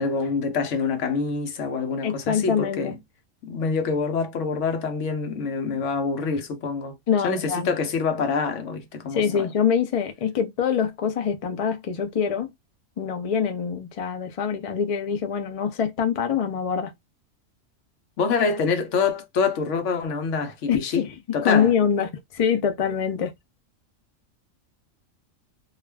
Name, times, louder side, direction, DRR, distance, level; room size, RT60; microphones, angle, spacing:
voice 1, 0.0-3.0 3.4-6.9 7.2-9.5 18.2-21.0 21.3-21.7, left 5 dB, 70° left, 1.0 m, -26 dB
voice 2, 2.0-2.9 7.1-7.7 9.1-12.5 13.0-16.9 20.7-21.1 21.4-23.3, left 7 dB, 50° left, 0.4 m, -24 dB
2.4 x 2.3 x 3.2 m
omnidirectional pair, 1.4 m